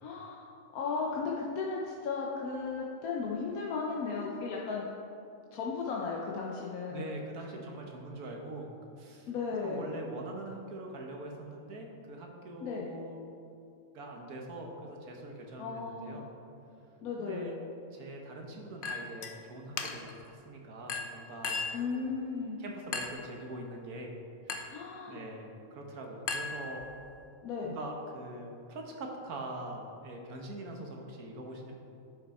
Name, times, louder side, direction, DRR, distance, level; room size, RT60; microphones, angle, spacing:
voice 1, 0.0-4.9 5.5-7.1 9.3-9.8 12.6-12.9 15.6-16.2 17.0-17.5 21.7-22.6 24.7-25.2 27.4-27.7, left 4 dB, 80° left, -2 dB, 1.3 m, -35 dB
voice 2, 6.9-8.7 9.0-9.3 9.6-13.2 13.9-16.3 17.2-17.6 17.9-22.1 22.6-24.1 24.5-24.8 25.1-26.8 27.6-31.7, right 2 dB, 90° right, 1 dB, 1.6 m, -43 dB
Chink clink, 18.8-19.3 19.8-20.2 20.9-21.9 22.9-23.3 24.5-24.8 26.3-27.1, left 4 dB, 55° left, 0.6 m, -37 dB
11.0 x 6.0 x 4.2 m, 2.6 s
omnidirectional pair, 1.5 m